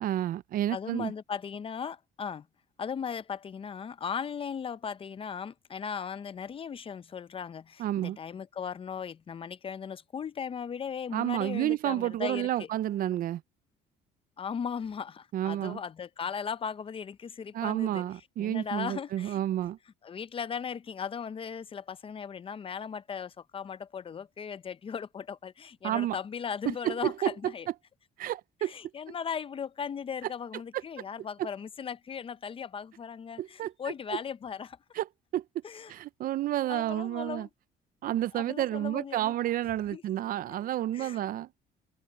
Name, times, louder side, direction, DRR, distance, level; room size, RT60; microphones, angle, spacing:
voice 1, 0.0-1.1 7.8-8.2 11.1-13.4 15.3-15.8 17.5-19.8 25.8-26.2 26.7-27.3 28.2-28.7 29.1-29.2 31.4-31.5 33.4-33.7 35.0-35.1 35.3-35.4 35.9-37.5 38.0-41.5, right 13 dB, 55° right, 0.5 m, -30 dB
voice 2, 0.7-2.5 2.8-12.7 14.4-18.0 18.4-19.4 20.0-27.7 28.6-34.8 35.6-35.9 36.7-37.5 38.3-39.4 39.9-40.0 40.9-41.2, left 7 dB, 35° left, 0.6 m, -37 dB
cardioid pair, 110°, 17 cm